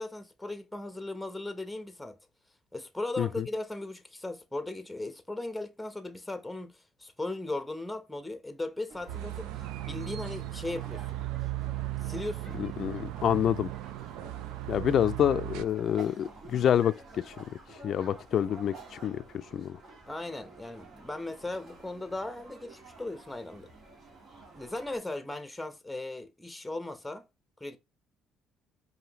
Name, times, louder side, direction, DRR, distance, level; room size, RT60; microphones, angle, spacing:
voice 1, 0.0-2.2 2.7-9.5 9.9-11.2 12.0-12.6 20.1-23.7 24.5-27.3 27.6-27.8, left 2 dB, 5° left, 0.8 m, -37 dB
sound 1, 8.9-25.0, right 3 dB, 55° right, 1.9 m, -51 dB
sound 2, 9.1-15.7, right 16 dB, 85° right, 0.3 m, -37 dB
voice 2, 12.6-13.7 14.7-17.3 17.7-19.2 19.5-19.8, left 9 dB, 55° left, 0.4 m, -27 dB
4.8 x 2.7 x 2.9 m
cardioid pair, 95°, 0 cm